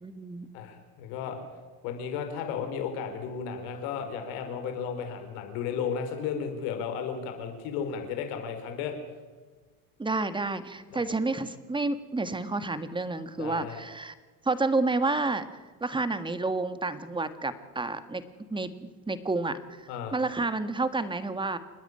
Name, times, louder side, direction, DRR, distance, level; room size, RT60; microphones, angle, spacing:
voice 1, 0.0-0.5 10.0-14.1 14.4-15.5 15.8-18.2 18.5-21.6, right 3 dB, 10° right, 12 dB, 1.6 m, -30 dB
voice 2, 0.5-1.4 1.8-8.9 10.9-11.0 13.4-13.8 19.9-20.2, left 7 dB, 70° left, 6 dB, 4.8 m, -34 dB
28.5 x 10.0 x 9.9 m, 1.4 s
supercardioid pair, 110°, 45 cm